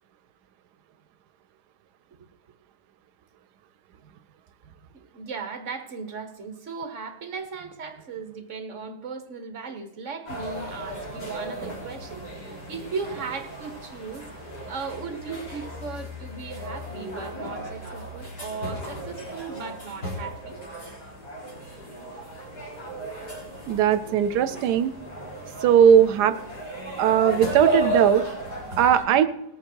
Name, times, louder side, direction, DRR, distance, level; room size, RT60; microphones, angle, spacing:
voice 1, 4.9-14.3 14.7-20.6, right 5 dB, 50° right, 8 dB, 1.7 m, -37 dB
sound 1, 10.3-29.0, right 1 dB, 85° left, 5.0 m, -34 dB
voice 2, 23.7-24.9 25.6-26.4 27.0-28.2 28.8-29.3, right 9 dB, 90° right, 12 dB, 1.2 m, -19 dB
19.0 x 8.7 x 4.6 m, 0.88 s
omnidirectional pair, 1.7 m